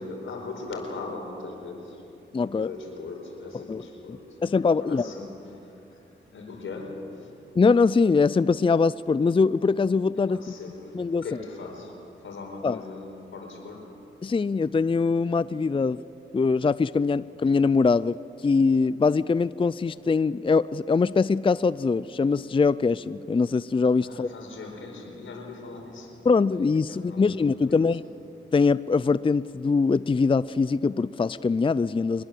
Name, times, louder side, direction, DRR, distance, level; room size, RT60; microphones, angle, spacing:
voice 1, 0.0-2.1 2.4-7.3 10.2-14.1 24.0-26.2 26.8-28.1, left 3 dB, 85° left, 2 dB, 4.6 m, -40 dB
voice 2, 2.3-2.7 3.7-3.8 4.4-5.1 7.6-10.4 10.9-11.2 12.6-12.8 14.2-16.0 16.3-18.2 18.4-24.3 26.3-28.0 28.5-32.2, left 4 dB, 25° left, 17 dB, 0.4 m, -22 dB
24.5 x 21.5 x 7.6 m, 2.8 s
cardioid pair, 50°, 20 cm